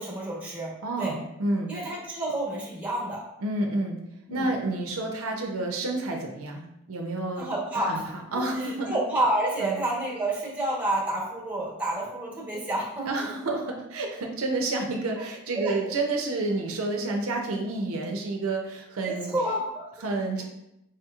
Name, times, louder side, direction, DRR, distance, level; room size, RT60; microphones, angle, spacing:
voice 1, 0.0-0.7 1.0-1.2 1.7-3.3 4.3-4.5 7.4-8.1 8.3-13.3 15.5-15.9 19.0-19.9 20.4-20.5, right 1 dB, 5° right, -4 dB, 1.0 m, -29 dB
voice 2, 0.8-1.7 3.4-4.0 4.3-7.5 7.9-8.0 8.3-8.9 9.6-9.8 13.1-19.3 20.0-20.4, right 2 dB, 75° right, 2 dB, 0.5 m, -29 dB
4.7 x 2.9 x 2.3 m, 0.83 s
head